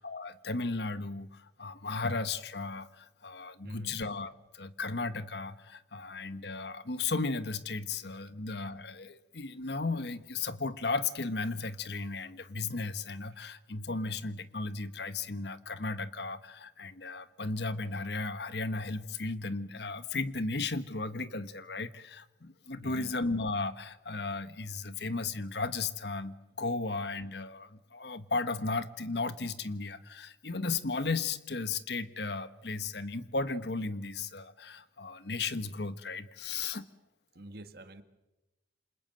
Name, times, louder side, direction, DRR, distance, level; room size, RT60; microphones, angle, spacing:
voice 1, 0.0-36.9, left 3 dB, 65° left, 13 dB, 1.3 m, -35 dB
voice 2, 3.6-4.0 8.3-8.4 22.8-23.1 37.3-38.0, right 1 dB, 55° right, 9 dB, 2.0 m, -47 dB
28.5 x 26.5 x 7.9 m, 1.0 s
head